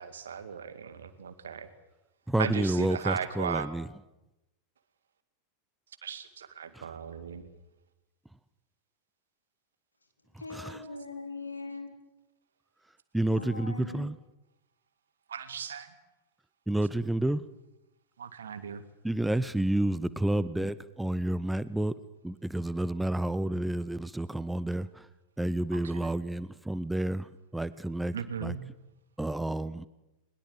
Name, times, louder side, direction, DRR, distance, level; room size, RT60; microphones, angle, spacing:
voice 1, 0.0-1.7 2.4-3.7 6.0-7.5 15.3-15.9 18.2-18.8 28.1-28.6, right 7 dB, 65° right, 11 dB, 2.0 m, -36 dB
voice 2, 2.3-3.9 6.7-6.9 10.5-10.8 13.1-14.2 16.7-17.4 19.0-21.9 22.2-25.1 25.4-28.1 28.4-28.6 29.2-29.9, right 1 dB, 5° right, 17 dB, 0.7 m, -30 dB
voice 3, 10.4-11.9 13.3-14.1, left 3 dB, 80° left, 5 dB, 3.9 m, -41 dB
22.0 x 21.5 x 7.5 m, 0.97 s
figure-of-eight pair, 90°, 0 cm